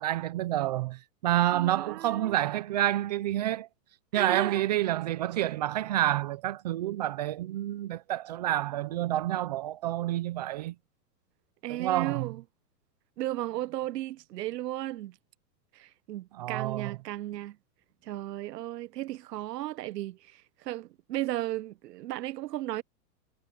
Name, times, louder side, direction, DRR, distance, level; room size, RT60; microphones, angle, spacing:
voice 1, 0.0-3.7 4.1-10.7 11.7-12.3 16.3-17.0, right 13 dB, 30° right, 0.5 m, -29 dB
voice 2, 1.5-2.3 4.1-4.7 11.6-12.4 13.2-15.2 15.7-17.6 18.0-22.8, right 15 dB, 85° right, 0.8 m, -35 dB
supercardioid pair, 160°, 47 cm